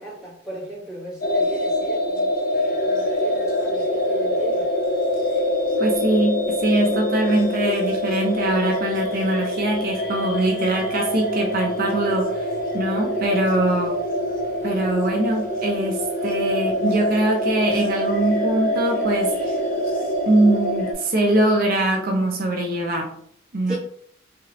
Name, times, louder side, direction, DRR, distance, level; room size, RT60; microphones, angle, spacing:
voice 1, 0.0-2.3 2.8-4.7 23.7-23.8, right 1 dB, 5° right, -9 dB, 1.4 m, -35 dB
sound 1, 1.2-20.9, left 1 dB, 45° left, 0.5 m, -24 dB
voice 2, 5.8-14.0 14.6-19.5 20.3-23.2 23.5-23.8, right 1 dB, 50° right, 2 dB, 0.5 m, -22 dB
3.2 x 2.8 x 2.9 m, 0.64 s
head